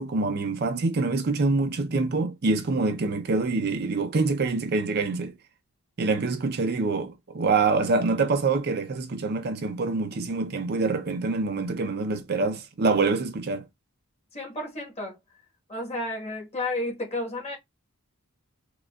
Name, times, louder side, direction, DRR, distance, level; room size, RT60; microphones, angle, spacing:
voice 1, 0.0-5.3 6.0-13.6, right 3 dB, 45° right, 0.5 m, -25 dB
voice 2, 14.3-15.2 15.7-17.6, left 2 dB, 30° left, 1.3 m, -32 dB
4.8 x 2.3 x 2.3 m
head